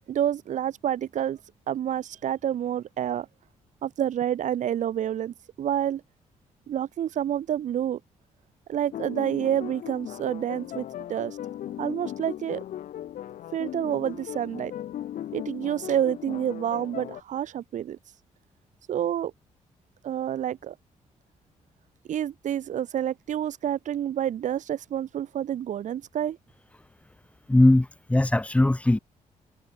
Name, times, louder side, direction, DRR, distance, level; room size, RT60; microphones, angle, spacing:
voice 1, 0.1-1.4 1.7-3.3 3.8-6.0 6.7-8.0 8.7-11.4 11.8-12.6 13.5-14.7 15.3-18.0 18.9-19.3 20.0-20.7 22.1-26.4, right 10 dB, 70° right, 1.2 m, -28 dB
sound 1, 8.9-17.2, left 11 dB, 80° left, 2.7 m, -37 dB
voice 2, 27.5-29.0, left 1 dB, 10° left, 0.7 m, -20 dB
cardioid pair, 85°, 13 cm